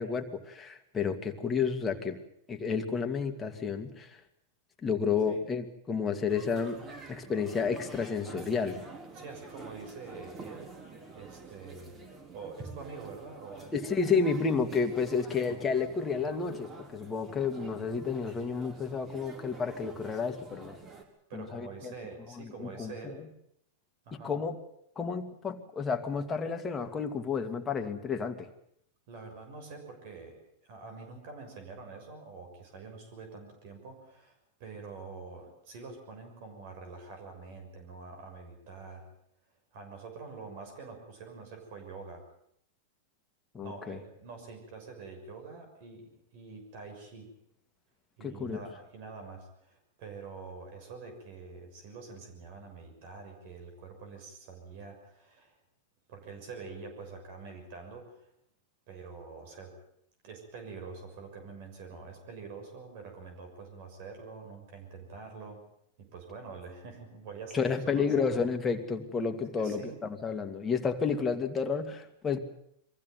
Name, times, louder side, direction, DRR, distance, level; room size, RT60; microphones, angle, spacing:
voice 1, 0.0-2.2 2.5-4.2 4.8-6.8 7.1-8.8 13.7-20.8 21.3-21.9 22.4-23.2 24.1-24.6 25.0-28.5 43.5-44.0 48.2-48.6 67.5-72.4, left 5 dB, 20° left, 5 dB, 2.3 m, -31 dB
sound 1, 6.3-21.0, right 3 dB, 30° right, 4.7 m, -48 dB
voice 2, 9.1-10.7 11.1-12.0 12.3-13.7 14.0-14.1 15.3-15.6 21.3-23.2 24.0-24.3 29.1-39.1 39.7-42.2 43.6-47.3 48.2-55.6 56.1-58.3 58.9-59.8 60.2-65.6 66.0-68.3 69.6-70.0, right 4 dB, 60° right, 4 dB, 6.6 m, -46 dB
23.5 x 15.5 x 9.3 m, 0.73 s
hypercardioid pair, 125°, 0 cm